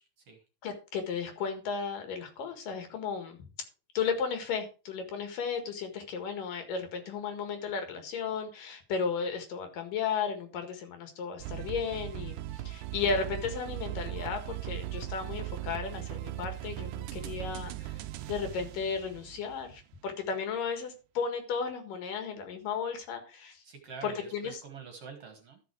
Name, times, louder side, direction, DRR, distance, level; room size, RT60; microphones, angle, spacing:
voice 1, 0.0-0.4 23.6-25.6, right 6 dB, 55° right, 5 dB, 2.2 m, -46 dB
voice 2, 0.6-3.4 3.9-23.6 24.0-24.6, left 6 dB, 75° left, 6 dB, 3.4 m, -34 dB
sound 1, 11.4-19.8, right 15 dB, 75° right, 2.0 m, -39 dB
13.0 x 6.1 x 4.6 m, 0.33 s
omnidirectional pair, 4.0 m